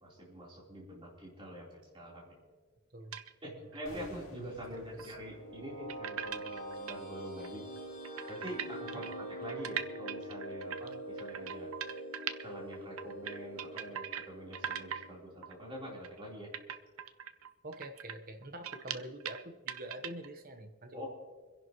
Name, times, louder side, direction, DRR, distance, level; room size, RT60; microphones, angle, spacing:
voice 1, 0.0-2.4 3.4-7.6 8.3-11.7 12.4-16.5 20.9-21.1, equal, 25° right, -5 dB, 3.9 m, -45 dB
sound 1, 3.1-3.3 3.7-3.8 5.0-5.1 5.9-7.0 7.4-7.5 7.8-7.9 8.0-12.4 12.7-14.3 14.5-15.1 15.4-15.5 16.0-16.2 16.5-19.4 19.7-20.3, right 9 dB, 70° right, 0.7 m, -41 dB
sound 2, 3.8-8.9 9.1-9.3, equal, 65° left, 2.8 m, -57 dB
voice 2, 4.7-5.2 8.9-9.0 17.6-21.0, right 1 dB, 40° right, 7 dB, 1.1 m, -46 dB
sound 3, 5.1-15.8, right 1 dB, 30° left, 5.3 m, -45 dB
25.5 x 11.0 x 3.1 m, 1.3 s
head